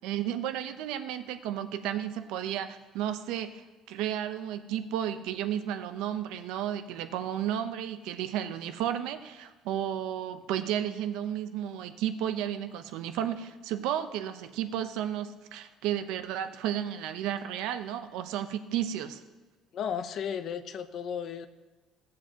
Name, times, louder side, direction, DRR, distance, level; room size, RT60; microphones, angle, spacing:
voice 1, 0.0-19.2, right 10 dB, 80° right, 9 dB, 0.7 m, -33 dB
voice 2, 19.7-21.5, left 8 dB, 40° left, 11 dB, 0.6 m, -34 dB
17.0 x 7.6 x 2.9 m, 1.3 s
cardioid pair, 175°, 0 cm